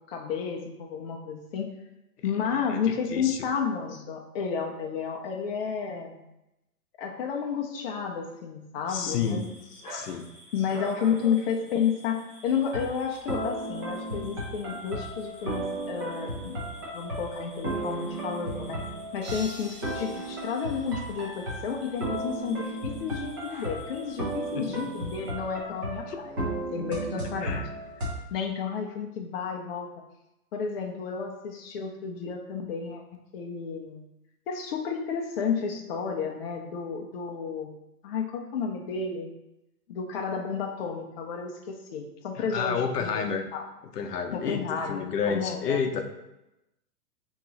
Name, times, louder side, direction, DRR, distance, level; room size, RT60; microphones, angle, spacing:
voice 1, 0.1-1.7 2.2-6.2 7.0-9.5 10.5-16.6 16.9-18.8 19.1-26.4 26.7-27.6 28.3-29.9 30.5-33.0 33.3-34.0 34.5-37.8 38.0-39.3 39.9-43.2 43.5-43.6 44.3-45.8, left 6 dB, 40° left, 2 dB, 0.5 m, -31 dB
sound 1, 8.8-25.3, equal, 15° left, 1.1 m, -49 dB
voice 2, 8.9-9.5 9.9-10.3 24.5-24.8 26.1-26.2 27.4-27.7 42.4-43.5 43.9-46.0, left 6 dB, 75° left, 5 dB, 0.7 m, -30 dB
sound 2, 12.6-28.1, right 1 dB, 15° right, 0.4 m, -35 dB
sound 3, 19.2-21.5, right 1 dB, 80° right, 1.2 m, -46 dB
3.0 x 2.8 x 3.8 m, 0.91 s
hypercardioid pair, 140°, 47 cm